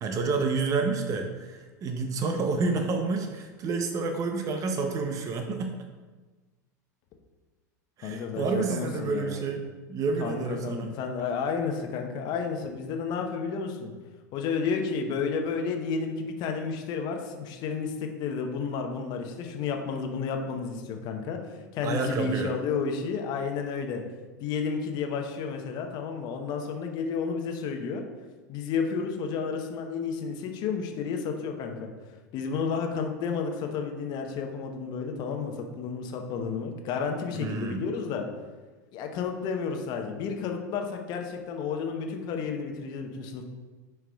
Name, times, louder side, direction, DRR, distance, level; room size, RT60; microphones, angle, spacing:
voice 1, 0.0-5.8 8.0-10.9 21.8-22.5 37.3-37.8, right 4 dB, 35° right, 5 dB, 0.7 m, -29 dB
voice 2, 8.0-9.4 10.2-13.9 14.3-21.4 21.7-24.0 24.4-28.0 28.5-31.9 32.3-38.3 38.9-43.4, left 5 dB, 45° left, 4 dB, 0.9 m, -31 dB
9.7 x 4.6 x 2.3 m, 1.3 s
hypercardioid pair, 85°, 10 cm